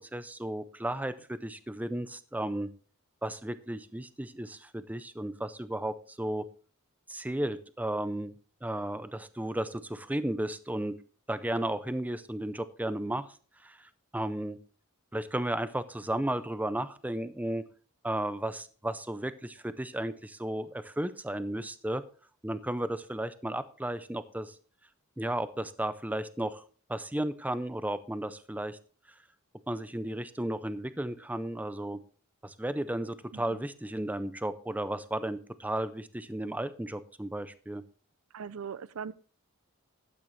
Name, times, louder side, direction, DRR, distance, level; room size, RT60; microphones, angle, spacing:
voice 1, 0.1-2.7 3.2-6.5 7.1-8.3 8.6-10.9 11.3-13.3 13.6-14.6 15.1-17.6 18.0-22.0 22.4-24.5 25.2-26.6 26.9-28.8 29.7-32.0 32.4-37.8, right 1 dB, 5° right, 0.5 m, -34 dB
voice 2, 38.3-39.1, right 6 dB, 75° right, 0.5 m, -40 dB
12.0 x 9.0 x 3.2 m
head